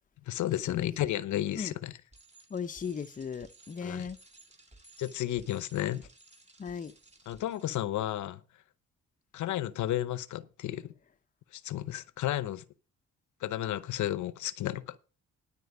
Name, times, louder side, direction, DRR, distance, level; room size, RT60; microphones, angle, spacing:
voice 1, 0.3-2.0 3.8-4.1 5.0-6.1 7.3-8.4 9.3-10.9 11.5-12.6 13.4-15.0, left 13 dB, 75° left, 0.8 m, -32 dB
Bicycle, 2.1-7.8, right 2 dB, 20° right, 2.5 m, -58 dB
voice 2, 2.5-4.2 6.6-6.9, left 6 dB, 25° left, 0.7 m, -37 dB
12.0 x 4.4 x 7.9 m
cardioid pair, 90°, 30 cm